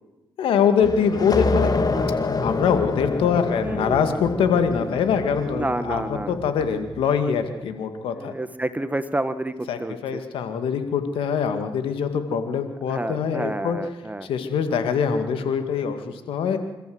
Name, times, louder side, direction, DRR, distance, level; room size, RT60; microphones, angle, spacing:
voice 1, 0.4-1.7 2.4-8.3 9.7-13.8 14.3-16.6, left 7 dB, 90° left, 8 dB, 2.2 m, -23 dB
sound 1, 0.8-7.2, left 3 dB, 45° left, 2.0 m, -27 dB
voice 2, 3.6-4.0 5.5-6.4 8.1-10.2 12.9-14.3, right 1 dB, 15° right, 11 dB, 1.5 m, -29 dB
27.0 x 14.0 x 8.0 m, 1.1 s
cardioid pair, 55°, 9 cm